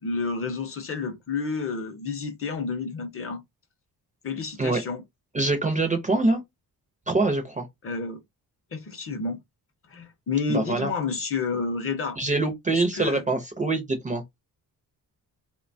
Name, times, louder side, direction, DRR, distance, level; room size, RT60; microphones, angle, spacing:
voice 1, 0.0-3.4 4.2-5.0 7.8-8.2 8.7-9.4 9.9-12.2 12.7-13.2, left 4 dB, 35° left, 0.5 m, -30 dB
voice 2, 5.3-6.4 7.1-7.7 10.5-10.9 12.2-14.2, right 2 dB, 20° right, 0.4 m, -24 dB
2.8 x 2.1 x 2.5 m
wide cardioid pair, 165°, 38 cm